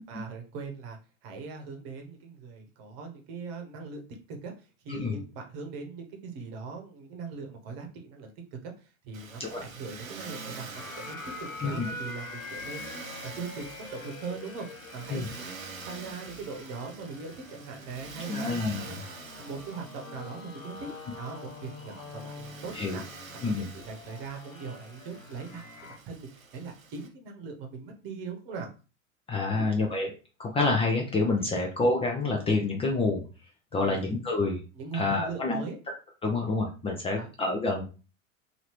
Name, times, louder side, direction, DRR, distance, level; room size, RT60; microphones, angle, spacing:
voice 1, 0.1-4.0 4.3-15.5 15.8-18.5 18.8-20.9 21.2-23.0 23.3-28.7 29.4-29.7 33.7-34.1 34.7-35.8 37.0-37.3, right 4 dB, 45° right, 3 dB, 1.0 m, -41 dB
Motor vehicle (road), 9.1-27.1, right 4 dB, 85° right, 0.8 m, -46 dB
sound 1, 10.7-26.0, left 3 dB, 80° left, 0.7 m, -45 dB
voice 2, 18.3-19.0 22.7-23.0 23.4-23.7 29.3-30.1 30.4-33.2 33.7-34.6 34.9-35.6 36.2-37.8, left 3 dB, 15° left, 0 dB, 0.5 m, -28 dB
2.8 x 2.7 x 3.2 m, 0.33 s
figure-of-eight pair, 90°, 40 cm